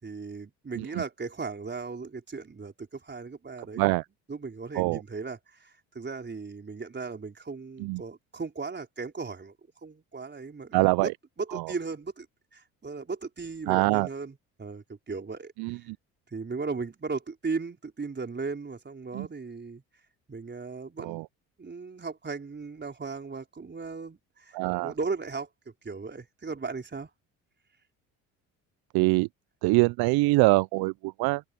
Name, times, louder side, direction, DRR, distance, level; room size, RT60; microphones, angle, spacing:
voice 1, 0.0-3.9 4.3-9.5 9.8-11.1 11.4-12.3 12.5-15.5 16.3-19.8 20.3-21.2 21.6-24.6 24.8-25.5 25.8-27.1, right 4 dB, 25° right, 4.5 m, -36 dB
voice 2, 10.7-11.1 11.5-11.7 13.7-14.1 15.6-16.0 19.1-19.3 21.0-21.2 24.5-24.9 28.9-29.3 29.6-31.4, right 23 dB, 65° right, 0.6 m, -24 dB
hypercardioid pair, 65°, 41 cm